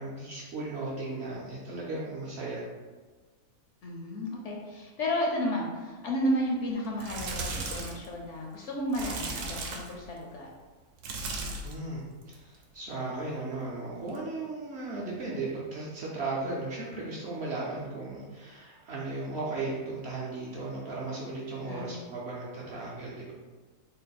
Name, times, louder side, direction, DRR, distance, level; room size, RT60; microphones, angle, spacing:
voice 1, 0.0-2.6 11.6-23.3, right 3 dB, 60° right, -5 dB, 0.8 m, -36 dB
voice 2, 3.8-10.5 21.6-22.0, equal, 65° left, -1 dB, 0.8 m, -32 dB
sound 1, 6.8-8.1 8.9-10.0 11.0-11.8 12.2-12.6 14.1-14.2, right 3 dB, 80° right, 1.1 m, -36 dB
3.9 x 2.0 x 4.0 m, 1.4 s
omnidirectional pair, 1.5 m